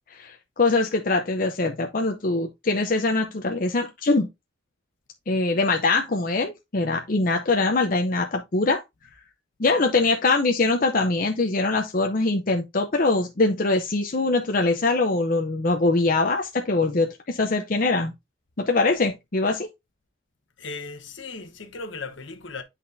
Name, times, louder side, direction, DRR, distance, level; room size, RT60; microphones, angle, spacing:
voice 1, 0.1-4.3 5.3-8.8 9.6-18.1 18.6-19.7, left 3 dB, 45° left, 0.6 m, -23 dB
voice 2, 20.6-22.6, left 4 dB, 70° left, 1.1 m, -37 dB
9.8 x 4.1 x 2.6 m
head